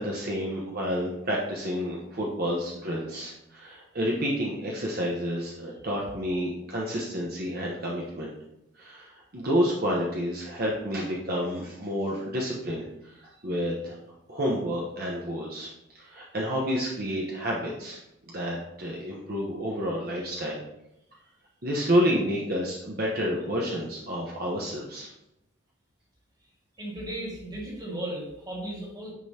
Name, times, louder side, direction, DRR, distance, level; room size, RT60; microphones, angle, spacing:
voice 1, 0.0-8.3 8.7-14.0 14.3-15.7 15.9-18.0 18.3-20.6 21.6-25.1, equal, 50° right, -3 dB, 1.1 m, -29 dB
voice 2, 26.8-29.1, right 1 dB, 20° right, -3 dB, 2.2 m, -35 dB
9.8 x 5.4 x 2.9 m, 0.86 s
head